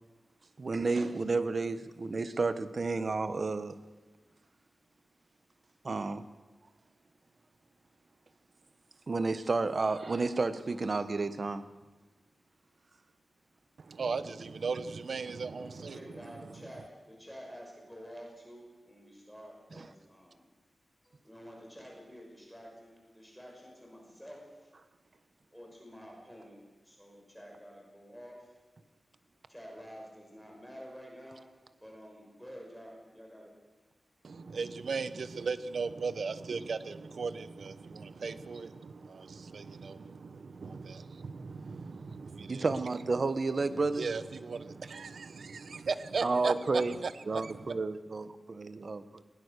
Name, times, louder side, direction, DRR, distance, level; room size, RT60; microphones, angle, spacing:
voice 1, 0.6-3.8 5.8-6.3 9.1-11.7 19.8-19.9 42.5-44.1 46.2-46.9 47.3-49.2, right 3 dB, 50° right, 1.2 m, -31 dB
voice 2, 13.8-16.7 34.2-42.9 43.8-47.8, right 4 dB, 70° right, 1.0 m, -37 dB
voice 3, 15.6-20.5 21.0-24.7 25.5-28.5 29.5-31.5 31.8-33.5, equal, ahead, 5.7 m, -50 dB
19.5 x 19.5 x 6.7 m
wide cardioid pair, 100°, 0 cm